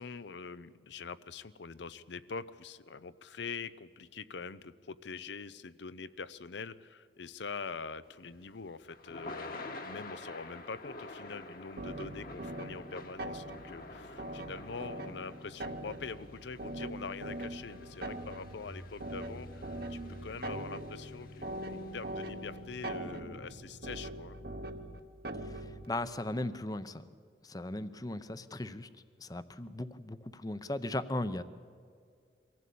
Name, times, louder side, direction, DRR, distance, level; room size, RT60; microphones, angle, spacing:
voice 1, 0.0-24.4, left 5 dB, 75° left, 16 dB, 0.7 m, -44 dB
Thunder / Rain, 8.1-22.4, left 2 dB, 50° left, 1.6 m, -49 dB
sound 1, 11.8-25.9, right 1 dB, 55° right, 1.1 m, -42 dB
voice 2, 25.4-27.0 27.4-28.9 29.2-31.4, left 1 dB, 20° left, 13 dB, 0.7 m, -37 dB
24.0 x 15.5 x 8.5 m, 2.2 s
head